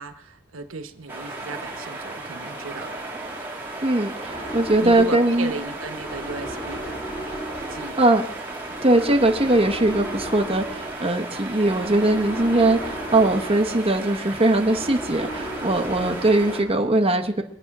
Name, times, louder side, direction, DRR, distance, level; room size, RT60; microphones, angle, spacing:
voice 1, 0.0-3.0 4.8-7.0 7.7-8.2 8.7-8.8 16.0-16.2, right 3 dB, 85° right, 8 dB, 1.1 m, -36 dB
sound 1, 1.1-16.6, right 2 dB, 10° right, 2.7 m, -35 dB
voice 2, 3.8-5.5 8.0-8.2 8.8-17.4, right 2 dB, 30° right, 3 dB, 1.1 m, -20 dB
sound 2, 4.3-16.8, right 1 dB, 50° left, 6.9 m, -37 dB
23.5 x 8.7 x 6.0 m, 0.80 s
head